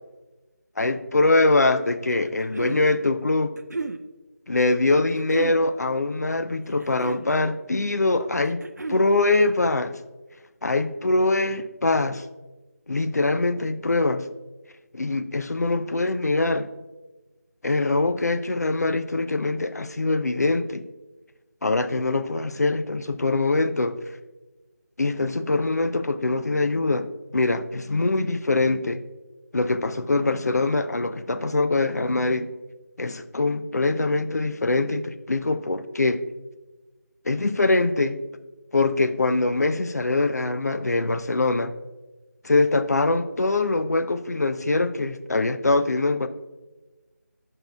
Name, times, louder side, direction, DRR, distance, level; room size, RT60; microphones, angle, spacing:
voice 1, 0.8-3.6 4.5-8.6 8.9-10.0 10.6-12.2 12.9-14.3 14.9-16.7 17.6-20.8 21.6-24.0 25.0-27.1 27.3-29.0 29.5-32.5 33.0-36.2 37.3-38.2 38.7-41.8 42.4-46.3, left 2 dB, 70° left, 10 dB, 0.5 m, -23 dB
sound 1, 2.1-2.8 3.6-4.0 5.2-5.6 6.7-7.3 8.5-9.1, right 3 dB, 80° right, 0.5 m, -33 dB
9.3 x 5.4 x 2.3 m, 1.2 s
figure-of-eight pair, 170°, 9 cm